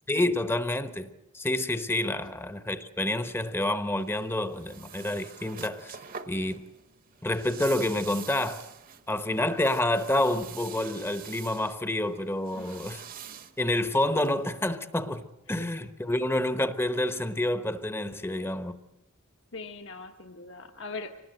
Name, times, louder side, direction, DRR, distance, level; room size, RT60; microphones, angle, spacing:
voice 1, 0.1-6.0 6.3-6.6 7.2-8.6 9.1-13.0 13.6-18.7, left 1 dB, 10° left, 0.9 m, -28 dB
sound 1, 4.0-14.7, right 8 dB, 40° right, 1.1 m, -46 dB
voice 2, 12.5-12.9 13.2-13.4 15.6-15.7 16.1-16.2 19.5-21.1, left 3 dB, 60° left, 1.2 m, -41 dB
25.5 x 19.0 x 7.8 m
head